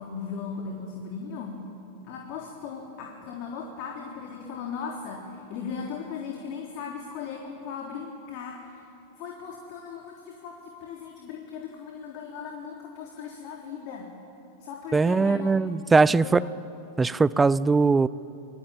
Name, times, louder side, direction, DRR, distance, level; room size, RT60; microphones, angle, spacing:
voice 1, 0.0-1.6 2.0-8.9 9.2-14.1 14.6-15.6 16.1-16.6, left 6 dB, 45° left, 0 dB, 3.6 m, -38 dB
voice 2, 14.9-16.4 17.0-18.1, right 4 dB, 10° right, 20 dB, 0.6 m, -20 dB
27.5 x 23.0 x 9.1 m, 2.7 s
figure-of-eight pair, 90°, 0 cm